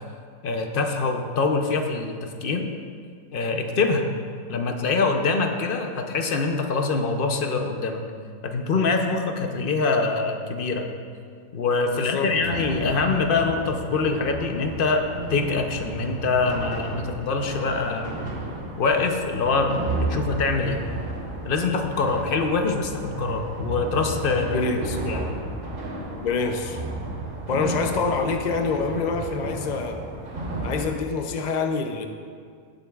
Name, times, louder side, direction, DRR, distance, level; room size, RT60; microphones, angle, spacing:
voice 1, 0.4-2.7 3.3-4.1 4.5-8.0 8.4-10.9 11.5-18.2 18.8-20.8 21.4-24.6 25.0-25.3, left 4 dB, 50° left, 4 dB, 0.7 m, -24 dB
voice 2, 11.9-12.3 24.5-25.0 26.2-26.8 27.5-30.0 30.6-32.0, left 4 dB, 90° left, 5 dB, 0.3 m, -26 dB
sound 1, 12.3-31.0, right 2 dB, 60° right, 1.7 m, -33 dB
16.5 x 7.7 x 2.3 m, 2.1 s
omnidirectional pair, 1.6 m